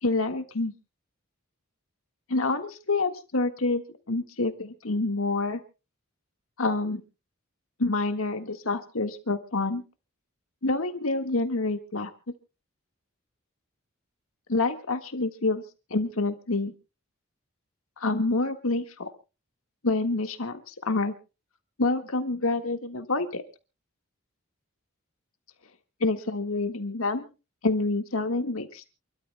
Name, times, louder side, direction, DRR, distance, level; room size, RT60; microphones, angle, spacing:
voice 1, 0.0-0.7 2.3-5.6 6.6-7.0 7.8-9.8 10.6-12.1 14.5-15.6 15.9-16.7 18.0-19.1 19.8-21.1 21.8-23.4 26.0-27.3 27.6-28.8, left 3 dB, 75° left, 7 dB, 1.7 m, -27 dB
28.5 x 12.5 x 2.3 m, 0.31 s
head